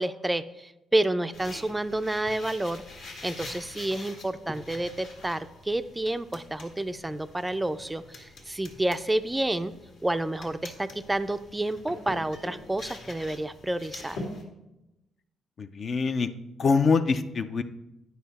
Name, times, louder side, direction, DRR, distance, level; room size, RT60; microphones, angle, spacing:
voice 1, 0.0-2.8 3.2-9.7 10.0-14.2, right 1 dB, 15° right, 11 dB, 0.4 m, -29 dB
sound 1, 1.3-14.4, left 2 dB, 80° left, 1.9 m, -45 dB
voice 2, 15.6-16.3 16.6-17.6, left 4 dB, 50° left, 10 dB, 0.5 m, -24 dB
9.6 x 5.7 x 4.1 m, 0.94 s
cardioid pair, 90°, 0 cm